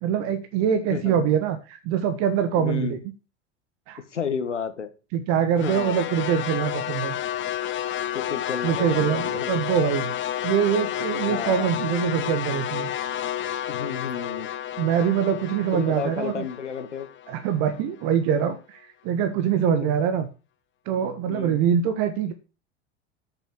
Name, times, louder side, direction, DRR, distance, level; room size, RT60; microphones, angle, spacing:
voice 1, 0.0-3.0 3.9-4.0 5.1-7.2 8.6-10.1 10.4-12.9 14.8-16.4 17.3-20.3 20.8-22.3, right 8 dB, 50° right, 10 dB, 1.5 m, -24 dB
voice 2, 0.9-1.3 2.6-3.0 4.1-4.9 5.6-6.0 8.1-9.5 11.3-11.7 13.7-14.5 15.7-17.1 19.7-19.9 21.2-21.6, left 6 dB, 85° left, 9 dB, 1.6 m, -32 dB
sound 1, 5.6-17.8, left 11 dB, 35° left, 1.2 m, -30 dB
9.0 x 7.1 x 7.3 m, 0.33 s
figure-of-eight pair, 80°, 35 cm